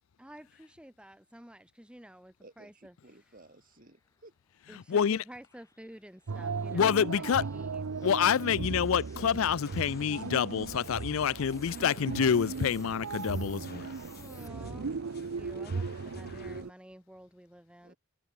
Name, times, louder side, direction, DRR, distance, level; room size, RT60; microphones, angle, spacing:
voice 1, 0.2-2.9 4.7-7.2 7.5-8.1 14.2-17.9, equal, 5° right, 1.2 m, -51 dB
voice 2, 2.4-4.4 17.8-18.0, right 2 dB, 45° right, 4.2 m, -56 dB
sound 1, 2.9-14.5, left 4 dB, 15° left, 4.2 m, -60 dB
voice 3, 4.9-5.2 6.7-7.4 8.0-13.9, left 7 dB, 70° left, 0.4 m, -27 dB
sound 2, 6.3-16.7, right 4 dB, 85° right, 0.6 m, -37 dB
sound 3, 8.6-16.6, left 3 dB, 50° left, 1.3 m, -53 dB
head